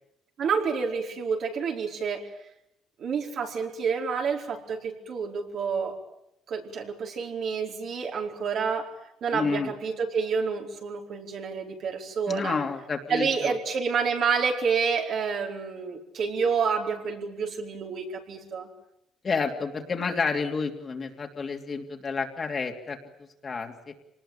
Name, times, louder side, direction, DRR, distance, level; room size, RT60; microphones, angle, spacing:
voice 1, 0.4-2.2 3.0-5.9 6.5-8.9 9.2-12.6 13.1-18.7, right 5 dB, 55° right, 1 dB, 4.5 m, -28 dB
voice 2, 9.3-9.7 12.3-13.5 19.2-23.0 23.4-23.9, left 4 dB, 35° left, 3 dB, 3.1 m, -30 dB
25.0 x 19.5 x 8.9 m, 0.79 s
cardioid pair, 115°, 0 cm